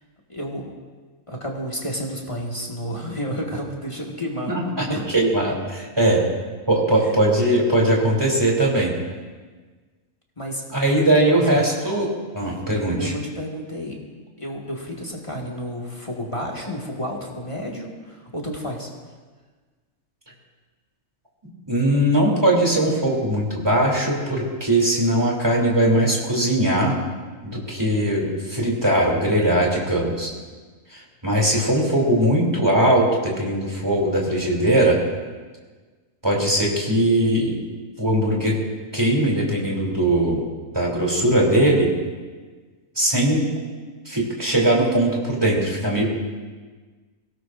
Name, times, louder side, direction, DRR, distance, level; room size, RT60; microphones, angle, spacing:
voice 1, 0.3-0.7 1.3-4.5 4.9-5.1 6.0-6.1 7.0-7.2 10.4-10.8 11.1-11.6 13.0-14.0 14.4-18.9 32.0-32.3, equal, 20° left, -2 dB, 1.9 m, -31 dB
voice 2, 4.5-6.2 6.7-8.9 10.7-13.1 21.7-27.0 27.4-30.3 30.9-35.0 36.2-37.6 38.0-38.6 38.9-40.5 40.7-41.9 42.9-43.4 44.0-46.0, right 1 dB, 15° right, -3 dB, 3.2 m, -20 dB
23.0 x 17.5 x 2.6 m, 1.4 s
omnidirectional pair, 1.5 m